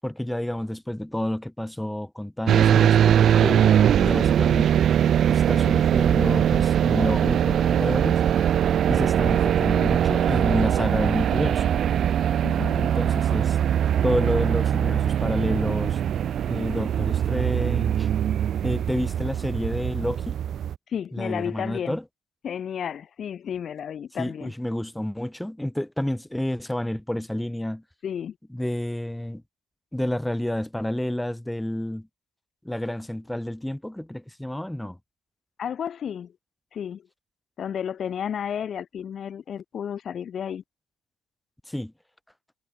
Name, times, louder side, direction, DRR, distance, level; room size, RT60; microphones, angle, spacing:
voice 1, 0.0-3.2 4.0-4.8 5.3-8.2 8.9-11.6 12.8-13.6 14.0-16.0 16.5-18.1 18.6-20.4 21.1-22.0 24.2-27.8 28.5-29.4 29.9-32.1 32.6-35.0 41.7-41.9, left 1 dB, 5° left, 6.6 m, -29 dB
sound 1, 2.5-20.8, right 9 dB, 40° right, 1.0 m, -21 dB
voice 2, 3.4-3.7 12.4-12.9 20.9-22.0 22.4-24.5 28.0-28.3 35.6-36.3 36.7-37.0 37.6-40.6, left 8 dB, 40° left, 6.5 m, -32 dB
figure-of-eight pair, 60°, 0 cm